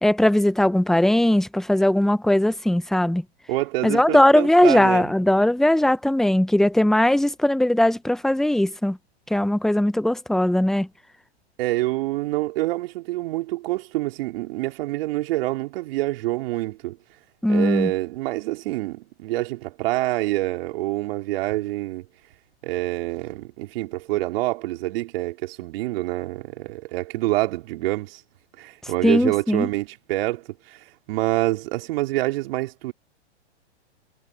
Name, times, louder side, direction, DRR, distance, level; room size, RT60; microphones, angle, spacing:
voice 1, 0.0-3.2 3.8-9.0 9.3-10.9 17.4-17.9 29.0-29.7, left 1 dB, ahead, 0.8 m, -19 dB
voice 2, 3.5-5.1 11.6-17.0 17.5-22.1 22.6-28.2 28.6-32.9, right 18 dB, 55° right, 4.0 m, -26 dB
hypercardioid pair, 115°, 34 cm